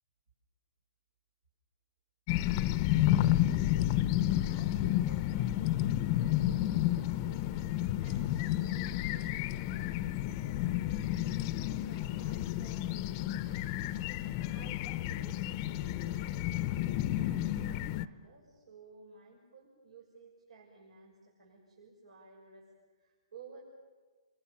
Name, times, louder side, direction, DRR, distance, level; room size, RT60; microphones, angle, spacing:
sound 1, 2.3-18.1, left 13 dB, 35° left, 0.7 m, -31 dB
voice 1, 2.8-3.9 4.5-7.7 8.0-13.6 14.2-22.7 23.0-23.6, right 4 dB, 90° right, -2 dB, 6.6 m, -56 dB
29.0 x 23.5 x 7.3 m, 1.4 s
hypercardioid pair, 150°, 3 cm